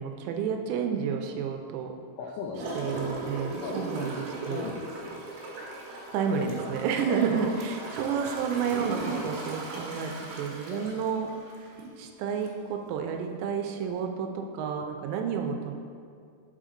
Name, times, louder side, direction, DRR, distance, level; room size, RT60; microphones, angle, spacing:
voice 1, 0.0-1.9 2.8-4.7 6.1-15.7, right 6 dB, 85° right, 4 dB, 2.8 m, -31 dB
voice 2, 2.2-3.0 3.6-4.1 4.5-5.2 7.1-7.3 10.7-10.9, left 5 dB, 85° left, -1 dB, 2.2 m, -37 dB
Gurgling / Toilet flush, 2.5-12.0 12.4-12.5, right 2 dB, 65° right, 2.6 m, -37 dB
8.0 x 5.0 x 3.8 m, 2.3 s
omnidirectional pair, 5.0 m